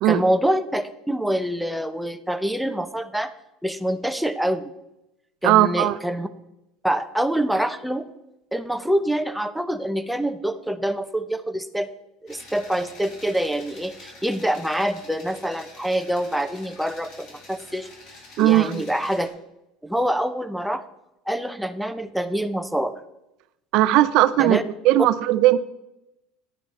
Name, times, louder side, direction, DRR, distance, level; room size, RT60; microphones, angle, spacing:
voice 1, 0.0-3.3 3.6-4.7 5.4-6.3 6.8-8.0 8.5-11.9 12.2-17.9 18.4-19.4 19.8-20.8 21.3-23.0 24.4-24.6, right 1 dB, ahead, 9 dB, 0.6 m, -25 dB
voice 2, 5.4-6.0 18.4-18.8 23.7-24.6 24.8-25.6, right 14 dB, 65° right, 15 dB, 0.5 m, -17 dB
sound 1, 12.3-19.3, left 2 dB, 55° left, 3.6 m, -46 dB
10.0 x 10.0 x 4.2 m, 0.90 s
supercardioid pair, 110°, 0 cm